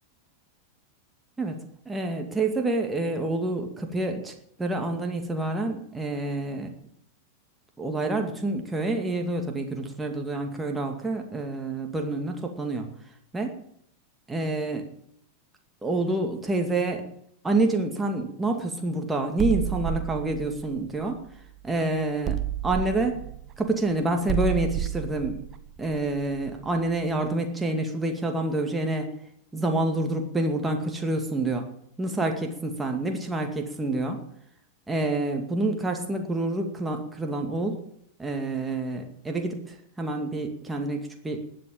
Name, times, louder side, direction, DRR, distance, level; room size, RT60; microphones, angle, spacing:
voice 1, 1.4-6.8 7.8-12.9 13.3-13.6 14.3-14.9 15.8-17.1 17.4-21.2 21.6-23.2 23.6-25.4 25.8-29.1 29.5-31.7 32.0-34.2 34.9-37.8 38.2-41.4, right 2 dB, 10° right, 3 dB, 2.2 m, -28 dB
sound 1, 19.4-21.7 22.3-26.9, right 12 dB, 30° right, 1.4 m, -31 dB
20.5 x 7.8 x 8.6 m, 0.73 s
figure-of-eight pair, 90°, 0 cm